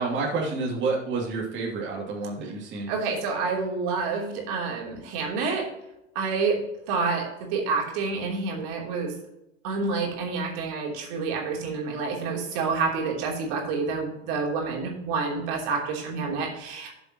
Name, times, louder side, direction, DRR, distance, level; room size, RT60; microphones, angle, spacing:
voice 1, 0.0-2.9, right 3 dB, 30° right, -3 dB, 2.6 m, -29 dB
voice 2, 2.9-5.7 6.1-6.6 6.9-9.1 9.6-16.9, right 4 dB, 55° right, -1 dB, 3.2 m, -28 dB
12.0 x 7.1 x 3.0 m, 0.90 s
hypercardioid pair, 105°, 38 cm